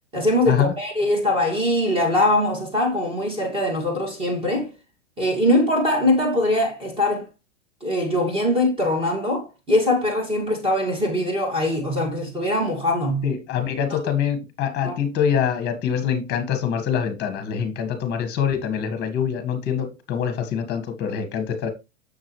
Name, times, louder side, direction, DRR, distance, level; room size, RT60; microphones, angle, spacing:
voice 1, 0.1-4.7 5.2-7.3 7.8-13.3 14.0-14.1 14.8-15.0, left 1 dB, 15° right, 2.3 m, -22 dB
voice 2, 13.2-21.7, left 8 dB, 25° left, 1.6 m, -24 dB
6.8 x 6.4 x 3.2 m
hypercardioid pair, 135°, 38 cm